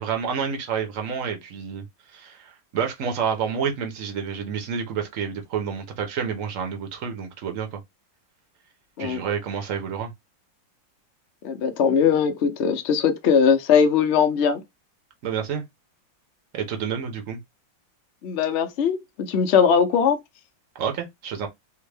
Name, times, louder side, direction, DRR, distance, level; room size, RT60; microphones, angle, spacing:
voice 1, 0.0-1.8 2.1-7.8 9.0-10.1 15.2-15.6 16.5-17.4 20.7-21.5, right 7 dB, 55° right, 1.1 m, -29 dB
voice 2, 11.4-14.6 18.2-20.2, left 7 dB, 80° left, 0.6 m, -20 dB
3.5 x 2.2 x 3.3 m
omnidirectional pair, 2.0 m